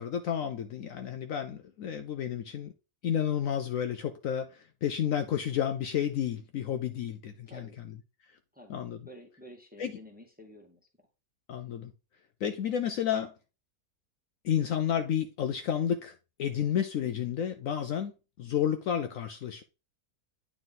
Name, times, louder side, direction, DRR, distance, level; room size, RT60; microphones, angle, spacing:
voice 1, 0.0-2.7 3.0-7.6 8.7-9.0 9.8-9.9 11.5-11.9 12.4-13.3 14.4-16.1 16.4-18.1 18.4-19.6, left 9 dB, 70° left, 0.9 m, -31 dB
voice 2, 7.5-7.8 8.5-8.8 9.1-11.1, equal, 5° right, 1.0 m, -50 dB
9.1 x 3.6 x 3.8 m
omnidirectional pair, 1.7 m